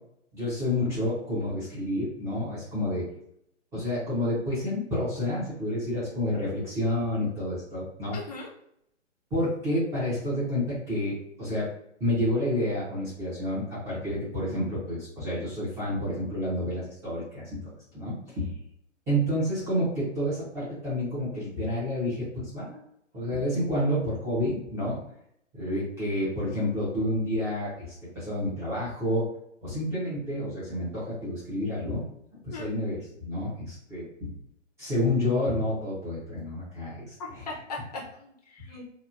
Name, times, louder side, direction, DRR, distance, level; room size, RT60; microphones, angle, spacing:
voice 1, 0.3-3.0 3.7-8.2 9.3-11.7 12.0-18.6 19.1-22.8 23.1-25.0 25.6-29.2 29.6-32.0 32.4-34.3 34.8-37.5 38.7-38.8, left 1 dB, 5° right, -10 dB, 0.6 m, -29 dB
voice 2, 8.1-8.5 32.5-32.7 37.5-38.8, left 3 dB, 30° left, -3 dB, 0.6 m, -39 dB
2.9 x 2.3 x 2.5 m, 0.74 s
hypercardioid pair, 135°, 37 cm